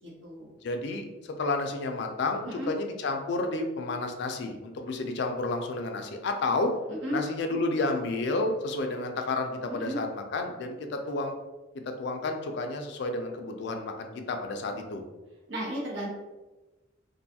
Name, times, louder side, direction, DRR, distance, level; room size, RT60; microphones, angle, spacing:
voice 1, 0.0-0.5 2.4-2.7 6.9-7.2 9.6-10.0 15.5-16.1, right 1 dB, 65° right, -3 dB, 0.8 m, -34 dB
voice 2, 0.6-6.7 7.1-11.3 11.9-15.0, left 2 dB, 60° left, 4 dB, 0.3 m, -31 dB
2.5 x 2.3 x 2.7 m, 1.1 s
head